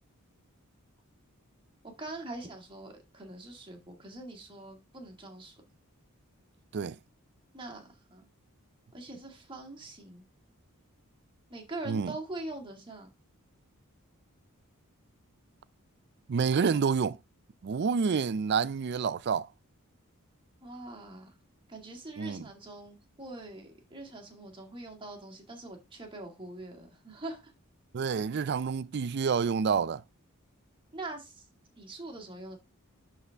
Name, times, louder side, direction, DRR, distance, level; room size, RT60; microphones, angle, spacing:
voice 1, 1.8-5.6 7.5-8.3 8.9-10.3 11.5-13.1 20.6-21.3 21.7-27.5 30.9-31.5 31.8-32.6, right 2 dB, 25° right, 2.0 m, -43 dB
voice 2, 16.3-17.2 17.6-19.5 22.2-22.4 27.9-30.0, right 6 dB, 50° right, 0.4 m, -28 dB
11.0 x 4.1 x 3.4 m
head